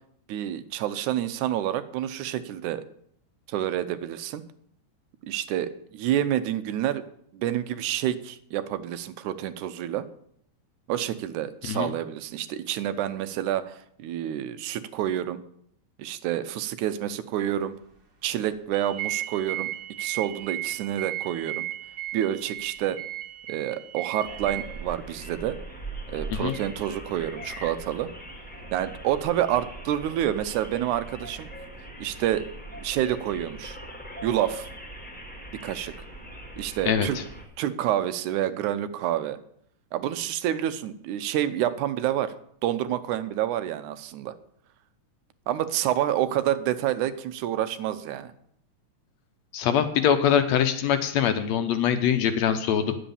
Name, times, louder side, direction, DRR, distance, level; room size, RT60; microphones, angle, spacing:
voice 1, 0.3-2.8 3.5-4.4 5.2-7.0 7.3-10.0 10.9-15.4 16.0-17.7 18.2-19.7 20.0-21.7 22.1-23.0 23.5-25.6 26.1-28.1 28.7-31.5 32.0-32.5 32.8-33.8 34.2-34.7 35.6-35.9 36.6-37.2 37.6-39.4 39.9-42.3 42.6-44.3 45.5-48.3, right 11 dB, 80° right, 12 dB, 2.1 m, -28 dB
sound 1, 18.7-24.6, right 14 dB, 40° right, 1.8 m, -35 dB
sound 2, 24.2-37.5, right 1 dB, 5° left, 1.3 m, -41 dB
voice 2, 36.9-37.2 49.5-53.0, left 8 dB, 70° left, 9 dB, 1.9 m, -23 dB
10.0 x 7.9 x 7.0 m, 0.68 s
omnidirectional pair, 3.5 m